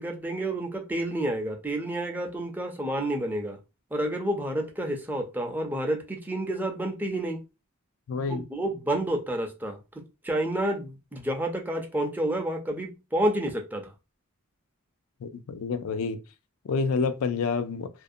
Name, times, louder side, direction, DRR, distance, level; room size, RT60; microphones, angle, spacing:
voice 1, 0.0-3.6 3.9-7.4 8.3-13.9, right 1 dB, 10° right, 0.4 m, -29 dB
voice 2, 8.1-8.4 15.2-16.2 16.6-17.9, left 4 dB, 75° left, 0.4 m, -28 dB
2.5 x 2.1 x 2.5 m
head